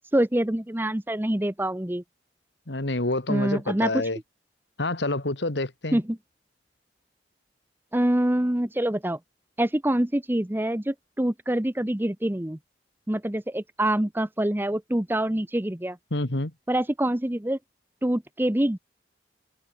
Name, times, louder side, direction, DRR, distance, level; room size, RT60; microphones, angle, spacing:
voice 1, 0.1-2.0 3.3-4.0 5.9-6.2 7.9-9.2 9.6-12.6 13.1-16.0 16.7-17.6 18.0-18.8, right 1 dB, 10° right, 0.8 m, -25 dB
voice 2, 2.7-4.2 4.8-6.0 16.1-16.5, left 2 dB, 80° left, 2.4 m, -27 dB
head